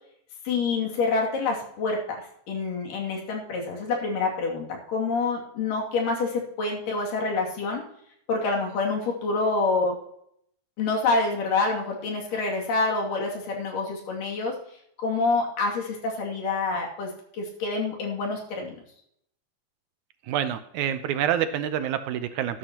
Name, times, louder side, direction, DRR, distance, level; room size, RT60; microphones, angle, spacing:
voice 1, 0.4-7.8 8.3-10.0 10.8-14.6 15.0-18.8, left 3 dB, 90° left, -1 dB, 4.1 m, -27 dB
voice 2, 20.3-22.6, right 10 dB, 75° right, 11 dB, 2.0 m, -27 dB
12.5 x 12.0 x 2.9 m, 0.69 s
omnidirectional pair, 3.7 m